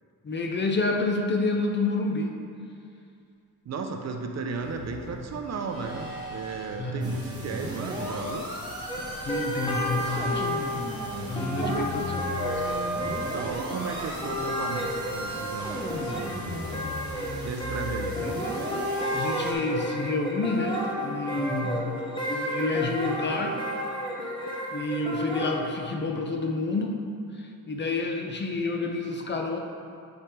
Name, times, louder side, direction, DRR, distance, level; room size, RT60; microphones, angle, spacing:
voice 1, 0.2-2.3 6.8-7.1 9.2-10.5 11.3-12.0 17.2-17.5 18.2-18.5 19.1-21.8 22.3-23.6 24.7-27.0 27.4-29.6, left 3 dB, 30° left, 2 dB, 0.6 m, -29 dB
voice 2, 3.7-8.5 11.6-11.9 13.0-16.7 17.4-18.6 21.3-21.7, right 4 dB, 50° right, 4 dB, 0.5 m, -35 dB
sound 1, 4.6-17.4, equal, 70° left, 1.3 m, -40 dB
sound 2, 7.0-19.5, equal, 10° right, 1.2 m, -36 dB
sound 3, 8.9-25.6, equal, 15° left, 0.9 m, -32 dB
7.8 x 3.5 x 4.3 m, 2.4 s
cardioid pair, 110°, 35 cm